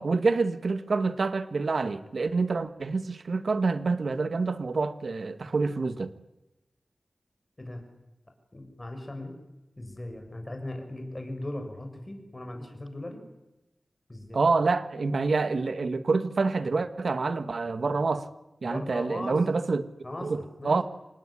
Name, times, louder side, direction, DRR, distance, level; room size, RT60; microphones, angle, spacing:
voice 1, 0.0-6.1 14.3-18.3 18.6-19.9 20.2-20.8, right 4 dB, 75° right, 12 dB, 1.6 m, -27 dB
voice 2, 8.5-9.3 9.8-13.2 14.1-14.4 18.6-19.4 20.0-20.8, left 1 dB, 25° left, 4 dB, 6.5 m, -38 dB
27.0 x 19.5 x 10.0 m, 0.97 s
wide cardioid pair, 80°, 0 cm